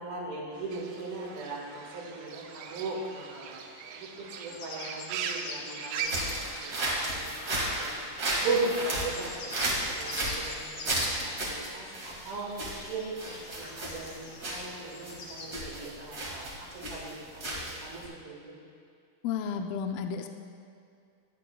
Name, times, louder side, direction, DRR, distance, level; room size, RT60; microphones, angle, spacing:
voice 1, 0.0-3.6 3.9-7.3 7.8-8.0 8.3-18.5, right 3 dB, 75° right, -3 dB, 3.5 m, -38 dB
sound 1, 0.5-15.5, left 3 dB, 65° left, 2.5 m, -46 dB
Fowl / Bird, 0.7-7.2, right 7 dB, 90° right, 2.6 m, -40 dB
sound 2, 6.0-18.1, right 1 dB, 40° right, 1.4 m, -34 dB
voice 2, 19.2-20.3, left 6 dB, 80° left, 5 dB, 2.3 m, -32 dB
17.5 x 9.9 x 2.2 m, 2.4 s
omnidirectional pair, 4.5 m